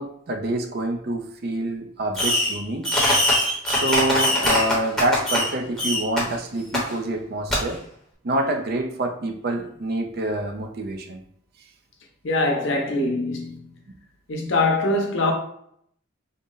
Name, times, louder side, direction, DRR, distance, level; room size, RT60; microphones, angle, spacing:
voice 1, 0.0-2.9 3.7-7.8 8.2-11.2, right 1 dB, 50° right, 0.5 m, -26 dB
Fireworks, 2.1-2.6 2.8-5.5 5.8-6.2 6.7-6.8 7.5-7.6, left 1 dB, 5° left, 0.9 m, -21 dB
voice 2, 12.2-13.7 14.3-15.3, left 2 dB, 60° left, 0.7 m, -23 dB
3.8 x 2.1 x 3.8 m
head